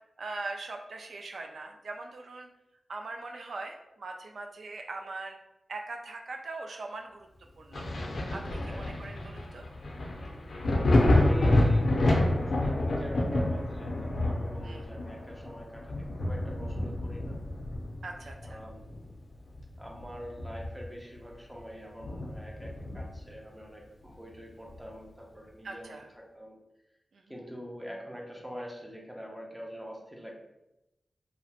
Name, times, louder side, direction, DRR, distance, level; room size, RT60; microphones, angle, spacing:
voice 1, 0.2-2.5 2.9-5.4 5.7-7.3 7.6-7.9 8.3-9.7 14.6-14.8 18.0-18.6 25.6-26.1 27.1-27.2, right 3 dB, 80° right, 3 dB, 0.3 m, -41 dB
Thunder, 7.7-19.1 19.5-21.0 21.3-21.4 22.0-23.3 24.7-24.8, left 1 dB, 75° left, 0.5 m, -28 dB
voice 2, 8.6-8.9 11.1-17.4 18.4-19.1 19.8-26.6 27.3-30.3, equal, 5° right, -1 dB, 0.7 m, -44 dB
2.8 x 2.1 x 2.8 m, 0.93 s
wide cardioid pair, 70°, 0 cm